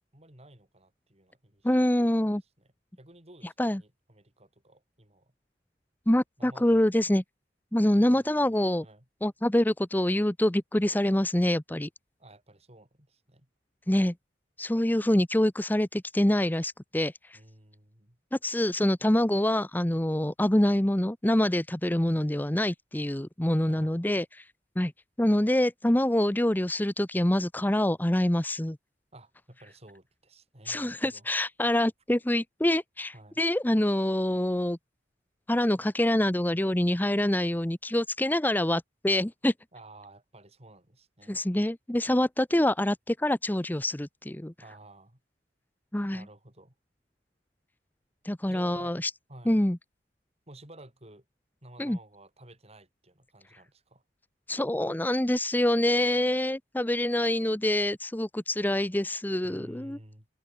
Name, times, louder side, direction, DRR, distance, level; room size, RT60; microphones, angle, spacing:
voice 1, 0.1-2.7 3.0-5.3 6.4-7.0 7.8-9.1 12.2-13.5 17.3-18.2 23.7-24.2 29.1-31.3 33.1-33.4 39.7-41.4 44.6-45.2 46.1-46.7 48.5-49.0 49.3-49.6 50.5-51.2 51.6-54.0 59.4-60.3, right 1 dB, 35° right, 6.4 m, -53 dB
voice 2, 1.6-2.4 3.6-3.8 6.1-7.2 7.7-8.9 9.2-11.9 13.9-14.1 14.6-17.4 18.3-24.5 24.8-24.9 25.2-28.8 30.7-34.8 35.5-39.5 41.3-44.5 45.9-46.2 48.2-49.1 49.5-49.8 51.8-52.0 54.5-60.0, left 1 dB, 10° left, 0.8 m, -26 dB
head